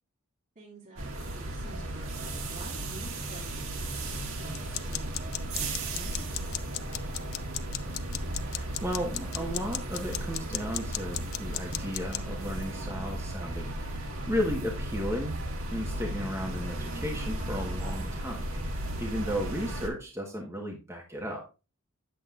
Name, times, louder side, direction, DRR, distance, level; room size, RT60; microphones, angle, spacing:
voice 1, 0.6-1.0 1.3-6.7, right 3 dB, 35° right, -4 dB, 2.3 m, -48 dB
sound 1, 1.0-19.9, right 1 dB, 65° right, 1.7 m, -35 dB
sound 2, 4.5-12.2, left 13 dB, 70° left, 0.5 m, -39 dB
voice 2, 8.4-15.4 15.7-18.5 19.0-21.4, equal, 15° right, -1 dB, 1.4 m, -34 dB
8.8 x 8.0 x 2.5 m, 0.30 s
head